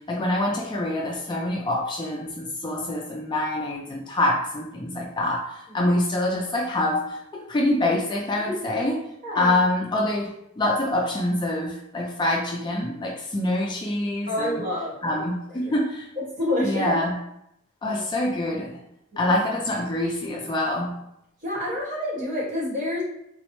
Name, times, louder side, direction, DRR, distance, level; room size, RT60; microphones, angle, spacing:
voice 1, 0.1-9.0 9.3-10.3 10.6-14.6 15.0-16.1 16.6-17.1 17.8-18.8 19.2-20.9, left 1 dB, 20° left, -2 dB, 0.3 m, -25 dB
voice 2, 9.2-9.6 14.3-15.2 15.5-15.6 16.2-17.0 17.8-18.0 19.1-19.4 21.4-23.0, left 1 dB, 40° right, -5 dB, 1.2 m, -28 dB
3.9 x 2.0 x 3.0 m, 0.79 s
head